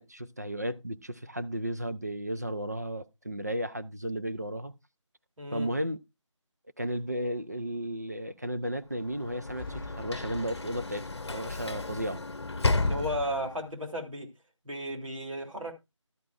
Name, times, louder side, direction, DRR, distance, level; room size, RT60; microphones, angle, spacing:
voice 1, 0.0-4.7 5.5-6.0 6.8-12.2, equal, 35° right, 0.5 m, -34 dB
voice 2, 5.4-5.7 12.8-14.3 14.6-15.7, equal, 85° right, 3.2 m, -34 dB
Sliding door / Slam, 9.0-13.7, left 3 dB, 55° left, 0.8 m, -33 dB
sound 1, 9.3-11.0, left 2 dB, ahead, 1.8 m, -46 dB
12.5 x 9.0 x 2.5 m
figure-of-eight pair, 175°, 16 cm